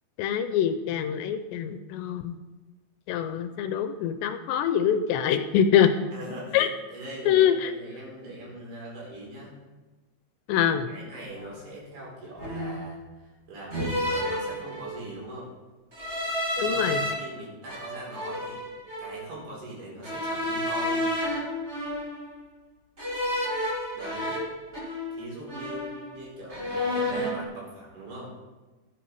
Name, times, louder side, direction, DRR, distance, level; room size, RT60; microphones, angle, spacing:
voice 1, 0.2-2.4 3.1-5.9 6.5-6.7 7.3-7.7 10.5-10.9 16.6-17.0, left 9 dB, 80° left, 9 dB, 2.7 m, -24 dB
voice 2, 6.1-9.6 10.9-15.5 16.5-18.6 19.0-21.2 24.0-24.4 25.2-28.3, right 1 dB, 75° right, -4 dB, 6.7 m, -41 dB
sound 1, 11.3-11.5 12.4-12.9 13.7-15.1 15.9-17.1 17.7-19.2 20.0-22.4 23.0-25.2 25.5-26.2 26.5-27.4, left 1 dB, 35° right, 1.1 m, -31 dB
12.5 x 10.0 x 4.7 m, 1.2 s
omnidirectional pair, 5.2 m